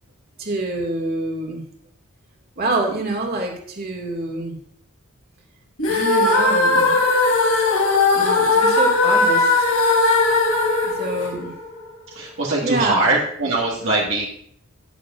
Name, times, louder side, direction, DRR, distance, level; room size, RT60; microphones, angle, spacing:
voice 1, 0.4-1.6 2.6-4.6 5.9-7.0 8.1-9.7 10.8-11.5 12.6-13.1, right 2 dB, 45° right, 0 dB, 2.4 m, -26 dB
sound 1, 5.8-11.9, left 3 dB, 75° left, 2.9 m, -18 dB
voice 2, 12.2-14.3, right 2 dB, 60° right, -3 dB, 1.9 m, -21 dB
13.5 x 11.0 x 2.6 m, 0.63 s
head